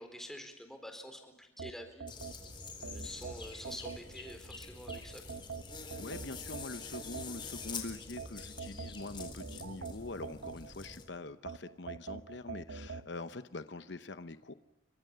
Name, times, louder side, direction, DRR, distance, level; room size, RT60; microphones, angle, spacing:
voice 1, 0.0-2.1 2.8-5.2, equal, ahead, 6 dB, 4.1 m, -47 dB
sound 1, 1.6-4.4 4.9-7.7 8.2-11.0 11.5-13.1, right 4 dB, 65° right, 1.1 m, -44 dB
sound 2, 2.1-11.0, left 4 dB, 25° left, 3.9 m, -46 dB
voice 2, 6.0-14.5, left 2 dB, 55° left, 11 dB, 0.8 m, -44 dB
30.0 x 25.0 x 6.8 m, 0.93 s
head